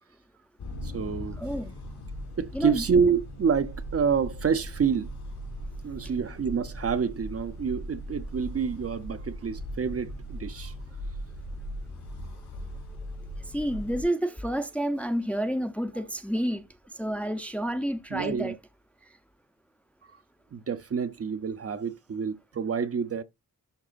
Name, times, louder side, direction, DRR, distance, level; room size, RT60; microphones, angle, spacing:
sound 1, 0.6-14.0, equal, 85° left, 3.5 m, -39 dB
voice 1, 0.8-1.4 2.4-5.1 5.8-10.7 15.9-16.0 18.1-18.6 20.1-20.2 20.5-23.2, right 6 dB, 40° right, 0.6 m, -28 dB
voice 2, 1.4-1.7 2.5-2.8 12.9-16.6 16.9-18.6, equal, 5° left, 0.5 m, -30 dB
11.0 x 4.8 x 2.3 m
wide cardioid pair, 180°, 38 cm